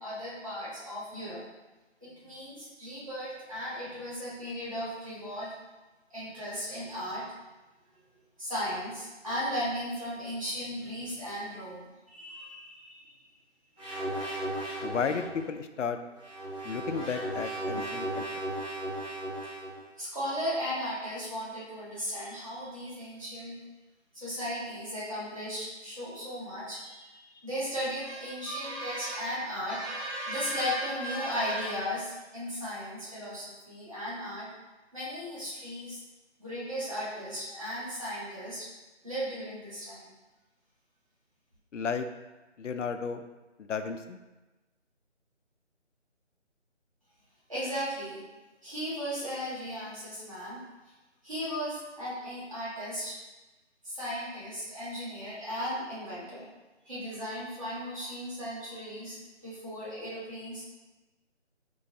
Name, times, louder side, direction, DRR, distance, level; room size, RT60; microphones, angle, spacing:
voice 1, 0.0-1.4 2.0-5.5 6.1-7.3 8.4-13.2 17.7-17.8 20.0-23.6 24.1-34.5 34.9-36.0 36.4-38.7 39.0-40.1 47.5-48.2 48.6-50.6 51.2-53.2 53.8-56.5 56.8-60.7, equal, 30° right, -9 dB, 1.3 m, -36 dB
sound 1, 13.8-15.4 16.1-19.8, right 1 dB, 5° right, 1.4 m, -35 dB
voice 2, 14.8-16.0 16.6-18.3 41.7-42.1 42.6-43.2 43.6-44.2, left 6 dB, 85° left, 8 dB, 0.5 m, -33 dB
4.5 x 3.1 x 2.7 m, 1.1 s
figure-of-eight pair, 170°, 36 cm